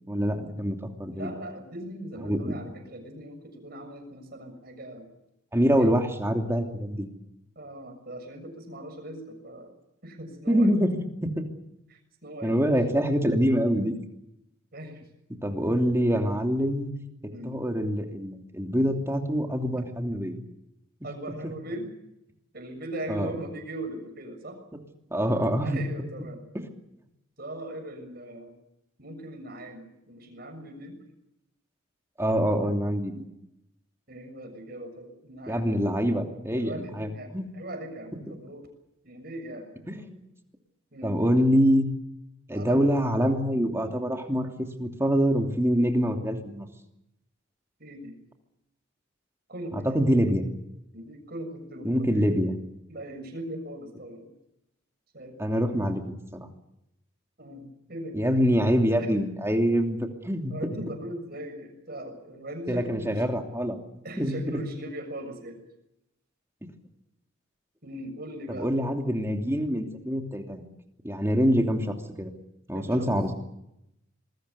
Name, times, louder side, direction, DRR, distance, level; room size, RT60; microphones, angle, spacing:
voice 1, 0.1-1.3 2.2-2.5 5.5-7.1 10.5-11.5 12.4-14.0 15.4-16.9 17.4-20.4 21.4-21.5 23.1-23.3 25.1-25.8 26.5-26.7 32.2-33.2 35.5-37.5 38.3-38.4 39.9-40.2 41.0-41.9 42.5-46.7 49.7-50.4 51.8-52.6 55.4-56.5 58.1-60.5 62.7-63.8 64.1-64.6 68.5-70.7 71.0-72.3 72.7-73.3, equal, 15° right, 3 dB, 2.9 m, -25 dB
voice 2, 1.1-5.1 5.8-5.9 7.5-9.7 10.0-10.7 11.9-12.8 14.7-15.0 17.3-17.5 19.7-19.8 21.0-21.9 22.5-24.6 25.6-26.4 27.4-28.5 29.0-31.0 34.1-35.7 36.5-38.7 39.0-39.7 40.9-41.3 42.5-42.9 47.8-48.2 49.5-49.9 50.9-52.3 52.9-54.3 55.1-55.4 57.4-58.2 59.0-59.1 60.5-63.2 64.0-65.6 67.8-68.7 72.7-73.1, right 1 dB, 50° right, 6 dB, 6.6 m, -39 dB
26.5 x 21.0 x 7.0 m, 0.83 s
head